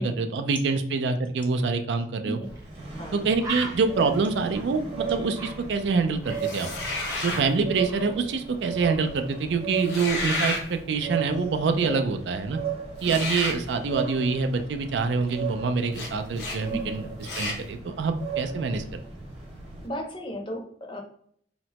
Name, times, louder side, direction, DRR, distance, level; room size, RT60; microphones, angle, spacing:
voice 1, 0.0-2.4 3.1-6.7 7.2-12.6 13.0-19.0, right 4 dB, 80° right, 7 dB, 0.4 m, -26 dB
sound 1, 2.4-19.9, right 6 dB, 35° right, 1.0 m, -36 dB
Bird, 2.5-2.7 3.0-3.1 3.4-6.6 6.8-8.5 8.8-9.1, right 2 dB, 20° right, 0.6 m, -40 dB
voice 2, 3.0-3.3 11.8-12.0 16.6-16.8 19.8-21.0, equal, 30° left, 2 dB, 0.5 m, -35 dB
sound 2, 6.4-7.5 9.8-10.6 13.0-13.6 15.9-16.1 16.4-16.6 17.2-17.6, left 2 dB, 70° left, 0.7 m, -31 dB
2.9 x 2.1 x 2.8 m, 0.63 s
head